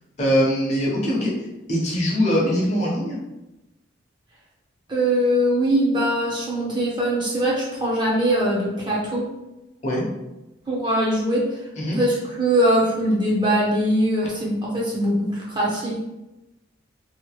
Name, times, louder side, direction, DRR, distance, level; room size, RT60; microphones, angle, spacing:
voice 1, 0.2-3.2 9.8-10.1 11.7-12.0, equal, 40° left, -4 dB, 0.8 m, -22 dB
voice 2, 4.9-9.3 10.7-11.6 11.9-16.0, equal, 25° right, -5 dB, 0.7 m, -22 dB
2.8 x 2.2 x 3.1 m, 0.95 s
head